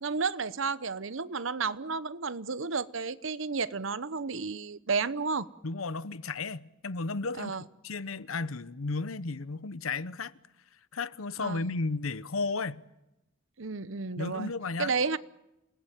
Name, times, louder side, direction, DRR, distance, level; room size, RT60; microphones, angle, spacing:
voice 1, 0.0-5.5 7.4-7.6 11.4-11.8 13.6-14.5 14.8-15.2, right 4 dB, 65° right, 0.9 m, -32 dB
voice 2, 5.6-7.5 7.8-10.3 10.9-12.8 14.2-14.9, left 3 dB, 90° left, 0.9 m, -33 dB
28.5 x 19.5 x 9.1 m
head